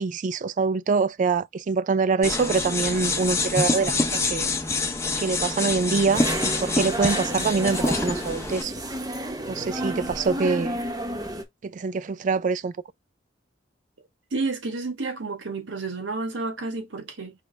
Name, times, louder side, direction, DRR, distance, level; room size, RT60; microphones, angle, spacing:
voice 1, 0.0-4.5 5.2-8.7 9.5-10.8 11.6-12.7, right 4 dB, 40° right, 0.3 m, -25 dB
sound 1, 2.2-8.6, left 3 dB, 15° left, 0.7 m, -26 dB
sound 2, 6.1-11.4, right 1 dB, 20° right, 0.8 m, -31 dB
voice 2, 14.3-17.3, right 3 dB, 80° right, 1.3 m, -30 dB
5.0 x 3.2 x 3.2 m
head